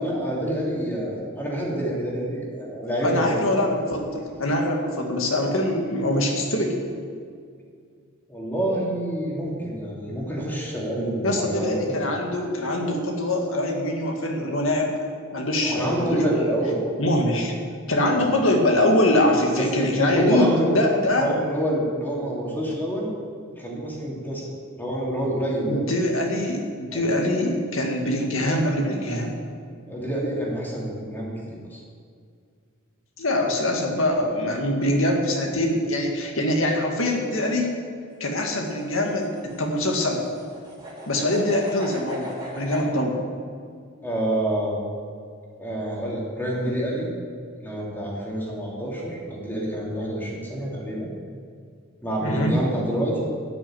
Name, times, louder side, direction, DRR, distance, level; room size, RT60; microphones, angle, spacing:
voice 1, 0.0-3.3 8.3-11.9 15.6-16.8 18.1-18.3 19.5-19.7 19.9-23.1 23.5-24.4 24.8-25.8 26.9-27.0 29.9-31.8 44.0-44.8 45.6-47.1 47.6-51.1 52.0-53.2, right 1 dB, 10° left, -4 dB, 3.0 m, -27 dB
voice 2, 3.0-6.9 11.2-14.9 15.3-16.2 17.0-17.5 17.9-21.3 25.7-29.4 33.2-37.7 38.2-40.3 41.1-43.2 52.2-52.5, left 1 dB, 65° left, 1 dB, 2.1 m, -23 dB
sound 1, 38.1-42.9, right 1 dB, 20° right, 3.3 m, -39 dB
12.5 x 6.5 x 9.1 m, 2.1 s
head